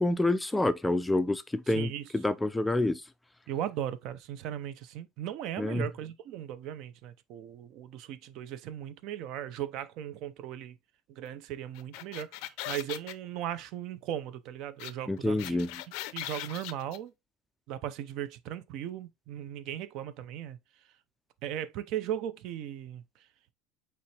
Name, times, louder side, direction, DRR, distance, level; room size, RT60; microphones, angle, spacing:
voice 1, 0.0-3.0 5.6-5.9 15.1-15.7, left 2 dB, 5° left, 0.3 m, -28 dB
voice 2, 1.7-2.0 3.5-10.8 11.1-15.6 16.1-17.1 17.7-20.9 21.4-23.3, right 11 dB, 55° right, 0.5 m, -37 dB
sound 1, 11.7-13.1 14.8-14.9 15.2-17.0, left 15 dB, 70° left, 0.4 m, -39 dB
5.6 x 3.0 x 3.2 m
supercardioid pair, 135°, 0 cm